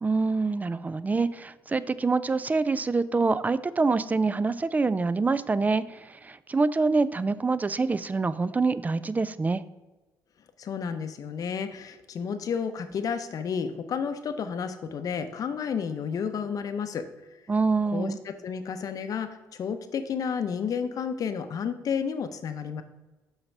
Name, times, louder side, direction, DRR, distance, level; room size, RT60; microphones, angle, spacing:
voice 1, 0.0-9.6 17.5-18.2, right 3 dB, 20° right, 16 dB, 0.3 m, -26 dB
voice 2, 10.6-17.0 17.9-22.8, left 6 dB, 55° left, 9 dB, 0.6 m, -31 dB
5.7 x 4.1 x 5.3 m, 1.1 s
supercardioid pair, 75°, 7 cm